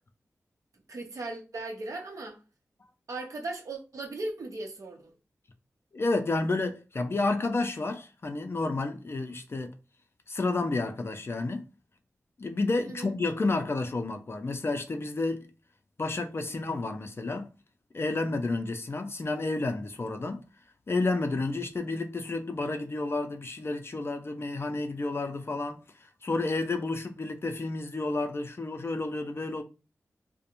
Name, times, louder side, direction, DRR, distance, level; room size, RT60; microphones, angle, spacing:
voice 1, 0.9-2.4 3.1-5.1 12.9-13.1, right 2 dB, 70° right, 0.7 m, -37 dB
voice 2, 5.9-9.8 10.3-11.6 12.4-15.5 16.0-17.5 17.9-20.4 20.9-25.8 26.2-29.6, left 3 dB, 45° left, 0.4 m, -30 dB
2.5 x 2.1 x 2.8 m
cardioid pair, 45°, 6 cm